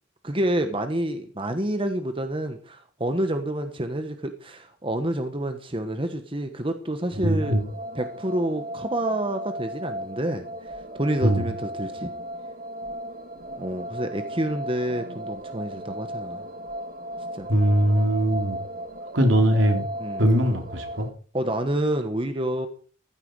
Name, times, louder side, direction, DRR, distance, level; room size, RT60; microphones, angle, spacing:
voice 1, 0.2-7.6 7.9-12.1 13.6-16.4 17.3-17.5 20.0-20.3 21.3-22.7, right 1 dB, 25° right, 7 dB, 1.2 m, -28 dB
voice 2, 7.2-7.6 11.2-11.5 17.5-18.6 19.1-19.9 20.2-21.1, equal, 70° right, 4 dB, 3.6 m, -21 dB
sound 1, 7.4-21.1, right 1 dB, 45° right, 1.5 m, -36 dB
15.0 x 13.0 x 4.7 m, 0.41 s
head